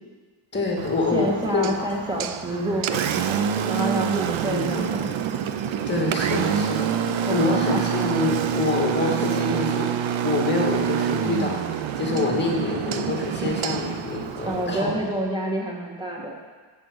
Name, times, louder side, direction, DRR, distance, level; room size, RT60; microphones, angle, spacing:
voice 1, 0.5-1.9 2.5-2.7 4.5-4.9 5.9-14.9, left 3 dB, 20° left, -1 dB, 2.3 m, -26 dB
Engine, 0.8-14.8, right 8 dB, 70° right, 0.7 m, -27 dB
voice 2, 1.1-5.1 7.2-8.0 14.4-16.3, right 1 dB, 10° right, -2 dB, 1.9 m, -28 dB
14.0 x 5.0 x 6.9 m, 1.4 s
wide cardioid pair, 135°, 49 cm